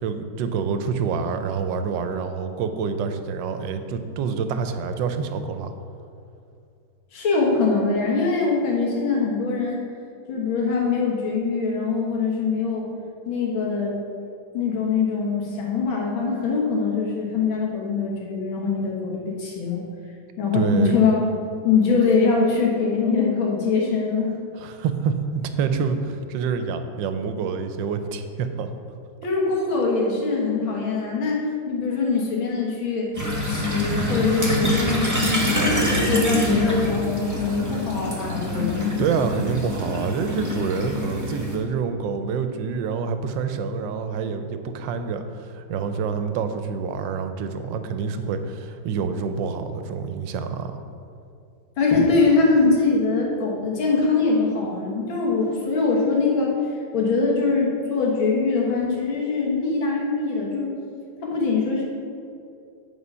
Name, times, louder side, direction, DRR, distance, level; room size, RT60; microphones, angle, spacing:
voice 1, 0.0-5.7 20.5-20.9 24.6-28.7 39.0-50.8, right 5 dB, 75° right, 8 dB, 1.2 m, -27 dB
voice 2, 7.1-9.8 10.3-12.9 13.3-13.9 14.5-19.8 20.4-21.2 21.6-24.3 29.2-33.1 33.5-35.7 36.1-38.9 51.8-56.6 56.9-60.7 61.2-61.8, left 4 dB, 75° left, -2 dB, 2.1 m, -23 dB
sound 1, 33.1-41.6, left 1 dB, 10° right, 0.9 m, -25 dB
8.2 x 4.9 x 5.5 m, 2.5 s
omnidirectional pair, 2.2 m